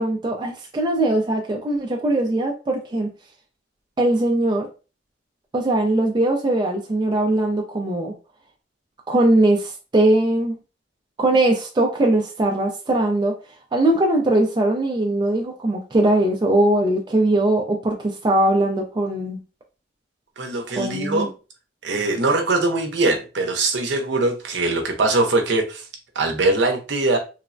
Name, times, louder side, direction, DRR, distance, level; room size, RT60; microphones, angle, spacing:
voice 1, 0.0-3.1 4.0-4.7 5.5-8.1 9.1-10.6 11.2-13.4 13.7-19.4 20.8-21.3, right 1 dB, 25° right, 0.4 m, -20 dB
voice 2, 20.4-21.3 21.8-25.8 26.2-27.2, right 2 dB, 65° right, 0.6 m, -22 dB
3.1 x 2.0 x 2.5 m
head